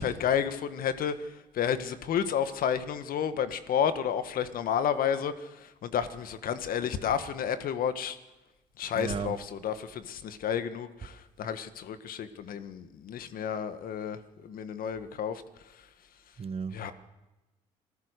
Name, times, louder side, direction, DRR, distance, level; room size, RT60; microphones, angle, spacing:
voice 1, 0.0-8.2 8.8-15.4 15.7-15.8 16.7-16.9, left 8 dB, 65° left, 1.7 m, -31 dB
voice 2, 8.9-9.3 16.4-16.9, right 6 dB, 40° right, 1.2 m, -34 dB
26.0 x 15.5 x 6.7 m
hypercardioid pair, 55°, 16 cm